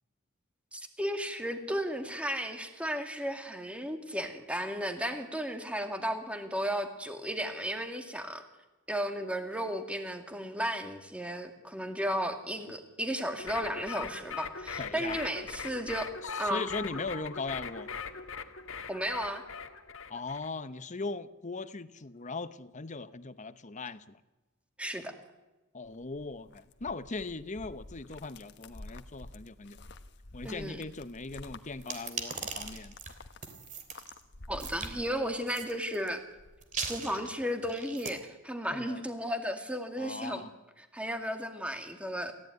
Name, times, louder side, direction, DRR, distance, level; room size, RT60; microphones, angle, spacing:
voice 1, 0.7-8.4 8.9-16.1 16.4-16.6 18.9-19.4 24.8-25.1 30.4-30.8 34.5-36.2 36.8-40.5 40.9-42.3, equal, 5° right, 6 dB, 2.3 m, -34 dB
sound 1, 13.4-20.5, left 5 dB, 75° left, 1.7 m, -40 dB
voice 2, 14.8-15.2 16.2-17.9 20.1-24.2 25.7-29.8 30.3-33.0 38.7-39.0 40.0-40.5, left 3 dB, 35° left, 13 dB, 0.9 m, -39 dB
sound 2, 25.8-35.8 36.1-37.0, left 2 dB, 55° left, 1.4 m, -50 dB
sound 3, 31.8-34.1 34.6-34.9 35.5-36.1 36.6-38.1, right 5 dB, 40° right, 3.1 m, -39 dB
28.5 x 15.5 x 9.4 m, 1.1 s
head